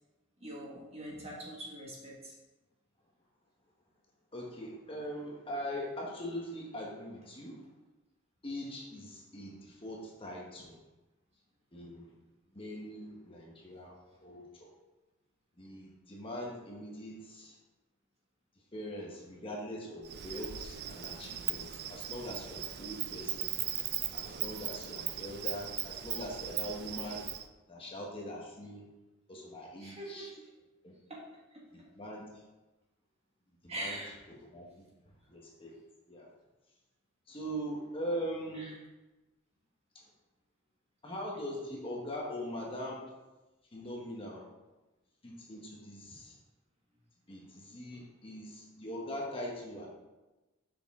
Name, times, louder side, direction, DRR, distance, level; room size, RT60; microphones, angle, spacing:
voice 1, 0.4-2.3 29.8-30.5 31.1-31.2 31.5-31.9 33.7-34.2 38.5-38.7 47.9-48.0, right 1 dB, 30° right, -3 dB, 1.7 m, -43 dB
voice 2, 4.3-7.6 8.4-10.8 11.7-12.1 12.5-14.0 14.2-14.7 15.6-17.6 18.7-23.5 24.1-27.3 27.7-28.8 29.3-30.3 30.8-30.9 31.7-32.3 33.6-35.7 36.1-36.3 37.3-38.7 39.9-40.0 41.0-43.1 43.7-44.5 45.2-46.4 47.3-49.9, equal, 25° left, -2 dB, 1.1 m, -42 dB
Insect, 20.0-27.4, right 11 dB, 50° right, 0.4 m, -38 dB
6.7 x 6.0 x 3.7 m, 1.1 s
head